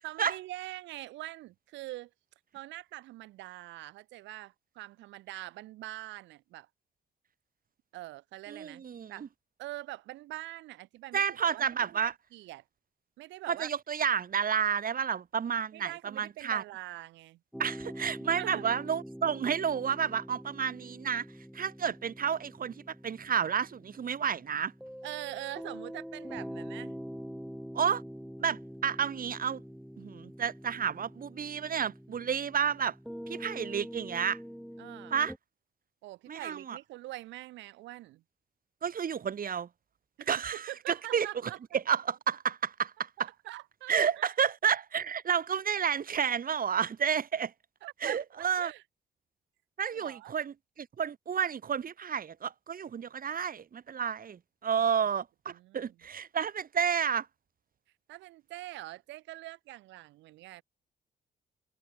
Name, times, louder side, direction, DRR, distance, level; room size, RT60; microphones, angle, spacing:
voice 1, 0.0-2.1 2.5-6.7 7.9-9.3 9.6-12.6 13.2-13.7 15.7-17.4 18.2-18.7 25.0-27.0 34.8-35.1 36.0-38.2 40.2-41.6 43.2-44.3 47.8-48.2 48.6-48.8 49.9-50.4 55.5-55.9 58.1-60.6, right 17 dB, 90° right, 5.0 m, -44 dB
voice 2, 8.5-9.3 11.1-12.1 13.5-16.6 17.6-21.2 21.5-24.7 27.7-28.0 28.4-29.6 30.0-32.9 33.3-34.4 35.1-35.3 36.3-36.8 38.8-39.7 40.3-41.3 41.7-43.3 43.9-47.5 48.0-48.7 49.8-57.3, right 7 dB, 50° right, 1.4 m, -31 dB
sound 1, 17.5-35.4, equal, ahead, 1.5 m, -45 dB
supercardioid pair, 60°, 18 cm